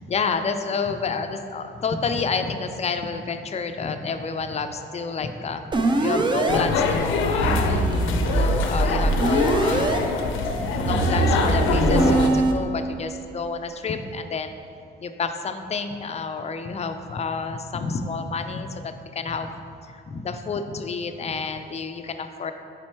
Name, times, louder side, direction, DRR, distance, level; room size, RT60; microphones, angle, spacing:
voice 1, 0.1-5.7 6.0-9.9 10.6-14.5 15.0-19.5 19.8-22.5, left 4 dB, 35° left, 8 dB, 0.4 m, -29 dB
sound 1, 5.7-6.6 7.4-10.0 10.9-12.5, right 2 dB, 25° right, 0.5 m, -22 dB
sound 2, 6.5-12.3, left 4 dB, 85° left, 0.5 m, -24 dB
5.2 x 4.3 x 4.5 m, 2.4 s
cardioid pair, 90°, 20 cm